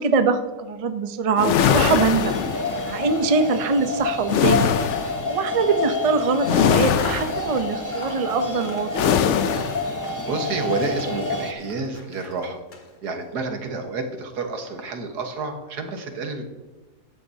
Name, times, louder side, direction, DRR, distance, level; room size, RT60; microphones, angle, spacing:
voice 1, 0.0-2.4 2.8-4.7 5.3-9.1, right 4 dB, 55° right, 8 dB, 0.4 m, -23 dB
sound 1, 1.4-3.0 4.3-5.2 6.4-7.5 8.9-9.9, left 8 dB, 65° left, 0.7 m, -21 dB
sound 2, 1.8-11.5, left 2 dB, 15° left, 0.7 m, -29 dB
Scissors, 5.9-10.4 10.7-13.3, left 4 dB, 35° left, 1.1 m, -44 dB
voice 2, 10.2-12.6 13.0-16.5, right 3 dB, 80° right, 5 dB, 1.8 m, -29 dB
14.5 x 10.5 x 2.7 m, 1.2 s
omnidirectional pair, 1.7 m